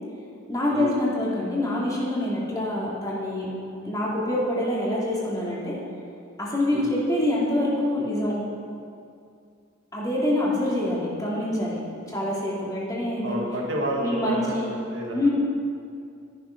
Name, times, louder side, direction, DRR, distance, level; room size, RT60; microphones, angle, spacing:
voice 1, 0.5-3.5 3.8-5.8 6.4-8.4 9.9-11.8 12.1-13.4 14.0-14.7 15.1-15.3, left 1 dB, 15° left, -6 dB, 2.7 m, -25 dB
voice 2, 13.2-15.3, equal, 60° right, -2 dB, 2.1 m, -30 dB
13.5 x 9.9 x 5.9 m, 2.4 s
head